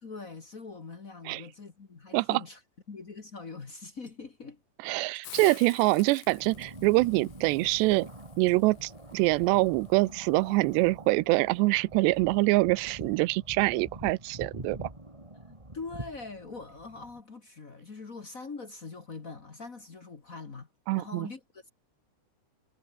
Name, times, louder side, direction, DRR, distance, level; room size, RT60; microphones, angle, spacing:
voice 1, 0.0-2.6 2.9-4.6 15.7-20.7 20.9-21.7, left 4 dB, 50° left, 0.9 m, -43 dB
sound 1, 4.1-4.2 5.2-5.3 5.8-6.0 6.6-6.8 7.7-7.9 8.5-8.7, left 1 dB, 15° left, 6.0 m, -61 dB
voice 2, 4.8-8.1 8.4-14.9 20.9-21.3, right 22 dB, 90° right, 2.8 m, -25 dB
Hiss, 5.2-10.9, left 15 dB, 85° left, 3.6 m, -50 dB
sound 2, 6.2-17.2, right 1 dB, 10° right, 3.0 m, -45 dB
omnidirectional pair, 4.8 m